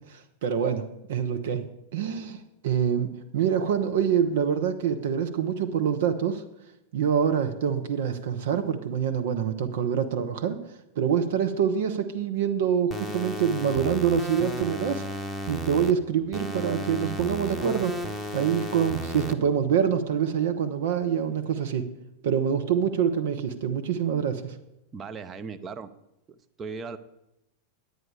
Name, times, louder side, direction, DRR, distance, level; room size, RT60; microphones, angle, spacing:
voice 1, 0.1-0.8 1.1-6.4 6.9-10.6 11.0-15.0 15.5-17.9 18.3-21.9 22.2-24.6, right 8 dB, 55° right, 7 dB, 0.8 m, -26 dB
sound 1, 12.9-15.9 16.3-19.3, equal, ahead, 1.0 m, -33 dB
voice 2, 24.9-25.9 26.6-27.0, right 5 dB, 20° right, 8 dB, 0.7 m, -37 dB
9.8 x 9.3 x 4.8 m, 0.89 s
figure-of-eight pair, 90°, 0 cm